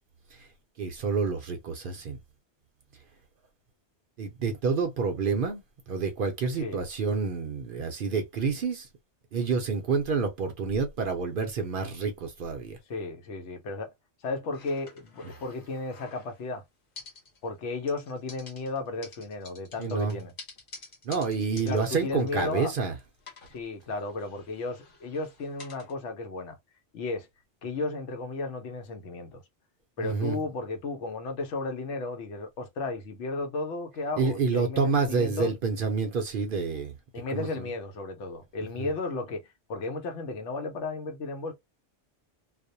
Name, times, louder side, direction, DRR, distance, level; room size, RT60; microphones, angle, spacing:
voice 1, 0.8-2.2 4.2-8.9 9.3-12.8 19.8-20.2 21.0-23.0 30.0-30.4 34.2-37.0 37.3-37.7 38.6-38.9, right 5 dB, 60° right, 0.6 m, -28 dB
voice 2, 12.9-13.9 14.2-16.6 17.4-20.3 21.5-22.7 23.5-26.6 26.9-27.3 27.6-29.4 30.0-35.5 37.1-41.5, left 3 dB, 80° left, 1.0 m, -34 dB
sound 1, 14.5-16.5 16.9-17.6 17.9-22.9 23.2-25.9, left 4 dB, 50° left, 1.0 m, -50 dB
2.4 x 2.1 x 2.6 m
omnidirectional pair, 1.2 m